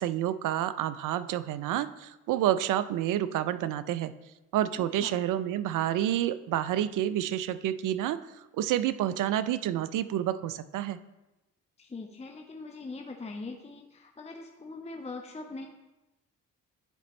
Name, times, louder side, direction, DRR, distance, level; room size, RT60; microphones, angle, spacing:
voice 1, 0.0-4.1 4.5-8.2 8.5-11.0, right 12 dB, 60° right, 13 dB, 0.5 m, -29 dB
voice 2, 4.7-5.2 11.8-15.7, left 3 dB, 20° left, 3 dB, 0.7 m, -42 dB
10.0 x 4.1 x 3.1 m, 1.0 s
hypercardioid pair, 45°, 36 cm